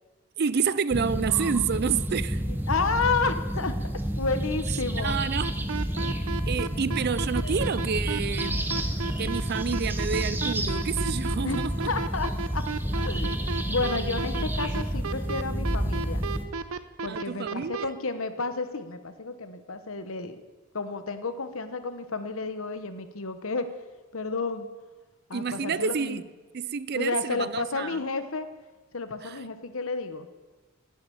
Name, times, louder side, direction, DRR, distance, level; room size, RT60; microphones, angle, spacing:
voice 1, 0.4-2.4 5.0-5.5 6.5-8.7 9.2-11.9 17.1-17.9 25.3-26.2 26.5-28.0 29.2-29.4, right 6 dB, 45° right, 0.4 m, -29 dB
sound 1, 0.9-16.5, right 1 dB, 10° right, 0.8 m, -30 dB
voice 2, 2.4-3.8 4.2-5.2 5.5-5.7 6.8-6.9 7.4-7.6 11.4-13.4 13.7-16.2 17.0-20.4 20.7-23.7 24.1-24.7 25.3-26.2 26.9-28.5 28.9-30.3, left 4 dB, 70° left, 1.1 m, -31 dB
sound 2, 5.4-17.9, right 4 dB, 75° right, 0.7 m, -33 dB
17.0 x 7.8 x 7.1 m
head